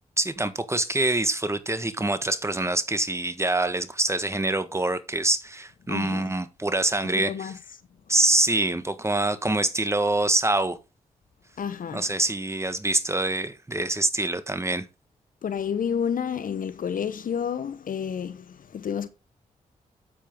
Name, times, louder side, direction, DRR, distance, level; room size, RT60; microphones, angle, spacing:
voice 1, 0.2-7.5 8.1-10.8 11.9-14.9, right 2 dB, 20° right, 1.6 m, -25 dB
voice 2, 5.9-6.3 7.1-7.6 11.6-12.1 15.4-19.1, left 7 dB, 70° left, 1.0 m, -30 dB
8.6 x 8.5 x 3.8 m
cardioid pair, 55°, 15 cm